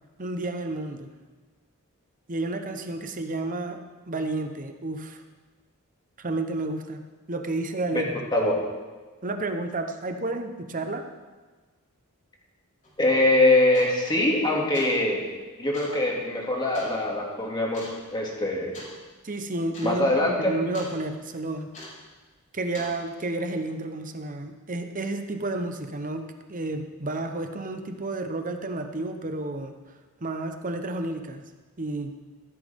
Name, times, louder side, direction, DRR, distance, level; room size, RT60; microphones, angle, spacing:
voice 1, 0.2-1.1 2.3-5.2 6.2-7.0 7.3-8.2 9.2-11.1 19.2-21.7 22.5-29.8 30.2-31.4 31.8-32.2, right 2 dB, 35° right, 6 dB, 1.0 m, -31 dB
sound 1, 12.8-13.0 13.7-14.1 14.6-15.0 15.7-16.0 16.7-17.0 17.7-18.0 18.7-19.0 19.3-19.4 19.7-19.9 20.2-20.9 21.7-22.1 22.7-23.0, left 1 dB, 35° left, 4.9 m, -42 dB
voice 2, 13.0-15.2 15.6-18.7 19.8-20.5, left 1 dB, 20° left, -2 dB, 2.5 m, -23 dB
14.5 x 13.5 x 3.7 m, 1.3 s
head